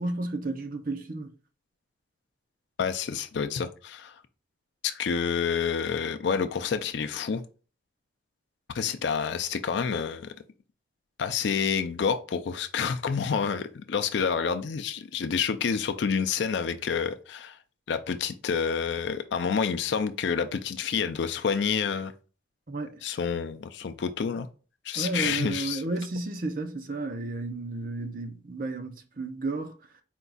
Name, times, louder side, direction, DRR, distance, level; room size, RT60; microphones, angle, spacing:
voice 1, 0.0-1.3 22.7-22.9 25.0-29.7, right 2 dB, 45° right, 0.6 m, -32 dB
voice 2, 2.8-4.1 4.8-7.4 8.7-10.3 11.2-17.6 17.9-22.1 23.0-24.5 24.9-25.8, left 6 dB, 70° left, 0.4 m, -28 dB
4.4 x 2.3 x 3.9 m
head